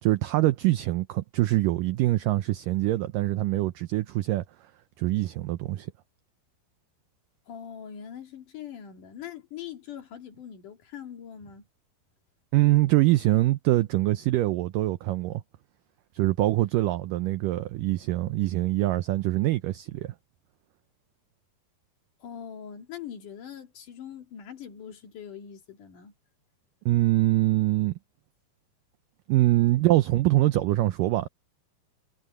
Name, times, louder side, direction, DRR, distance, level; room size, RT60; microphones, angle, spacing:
voice 1, 0.0-4.5 5.0-5.9 12.5-15.4 16.1-20.1 26.9-28.0 29.3-31.3, right 17 dB, 85° right, 1.9 m, -24 dB
voice 2, 7.5-11.7 22.2-26.1, left 9 dB, 55° left, 3.6 m, -42 dB
omnidirectional pair, 4.6 m